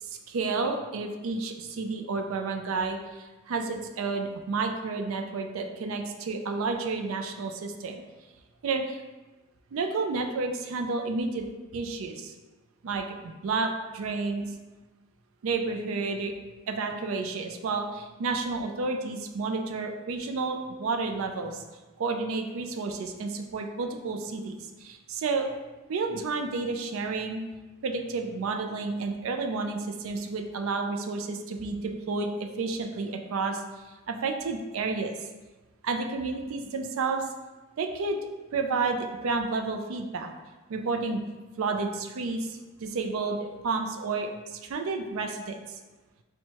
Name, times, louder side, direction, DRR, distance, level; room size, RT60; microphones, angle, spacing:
voice 1, 0.3-8.0 8.6-9.0 9.7-11.5 11.7-12.3 12.8-14.5 15.4-16.3 16.7-21.6 22.0-25.5 25.9-27.4 27.8-33.6 34.1-35.1 35.8-37.2 37.8-38.2 38.5-40.3 40.7-41.2 41.6-45.8, right 4 dB, 75° right, 5 dB, 0.4 m, -31 dB
4.4 x 2.2 x 2.8 m, 1.2 s
head